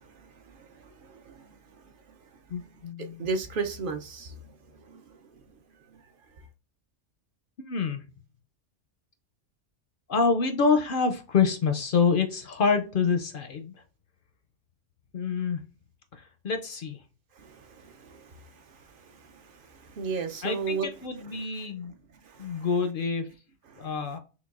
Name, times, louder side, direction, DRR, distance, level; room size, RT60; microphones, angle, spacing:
voice 1, 0.1-1.6 3.0-4.3 4.9-5.0 17.4-18.3 19.6-20.9 22.3-22.7 23.7-23.8, right 5 dB, 60° right, 0.6 m, -35 dB
voice 2, 2.5-3.3 7.6-8.0 10.1-13.7 15.1-15.6 16.1-17.0 20.4-21.9 22.4-23.3 23.8-24.2, left 5 dB, 60° left, 0.6 m, -27 dB
5.8 x 2.2 x 2.4 m
omnidirectional pair, 1.2 m